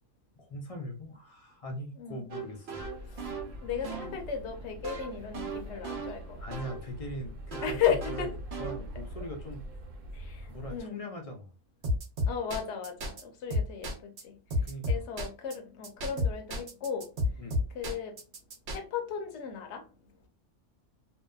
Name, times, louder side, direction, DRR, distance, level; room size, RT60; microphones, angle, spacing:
voice 1, 0.4-2.8 6.4-8.3 8.6-9.6 10.5-11.5 14.6-15.0 17.4-17.6, equal, 45° left, 0.4 m, -41 dB
sound 1, 2.3-6.9 7.5-9.2 11.8-13.2 13.5-14.2 14.5-15.5 15.8-18.8, left 1 dB, 60° right, 0.9 m, -33 dB
sound 2, 2.7-10.8, equal, 85° right, 1.1 m, -43 dB
voice 2, 3.6-6.4 7.6-8.3 10.1-11.0 12.3-14.4 14.9-17.1 17.7-18.1 18.7-19.8, left 8 dB, 70° left, 0.9 m, -35 dB
2.7 x 2.2 x 2.2 m
omnidirectional pair, 1.3 m